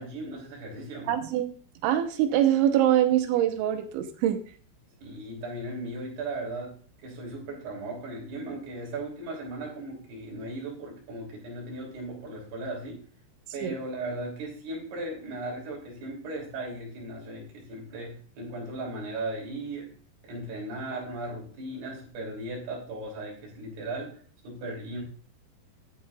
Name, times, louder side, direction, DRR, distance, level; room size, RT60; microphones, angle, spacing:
voice 1, 0.0-1.2 5.0-13.1 13.5-19.9 20.2-25.0, right 2 dB, 60° right, -2 dB, 5.1 m, -37 dB
voice 2, 1.1-1.5 1.8-4.4 13.6-13.7, right 11 dB, 85° right, 7 dB, 3.3 m, -24 dB
13.0 x 9.6 x 2.5 m, 0.43 s
omnidirectional pair, 5.4 m